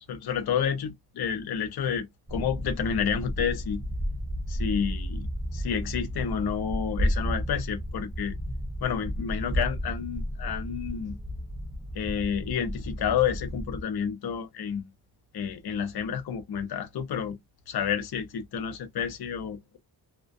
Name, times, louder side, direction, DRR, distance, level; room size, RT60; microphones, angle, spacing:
voice 1, 0.1-3.8 4.5-8.3 8.8-11.2 11.9-14.8 15.3-17.4 17.7-19.8, left 7 dB, 65° left, 0.6 m, -30 dB
sound 1, 2.3-13.8, equal, 10° right, 0.4 m, -32 dB
2.3 x 2.1 x 2.5 m
wide cardioid pair, 170°, 40 cm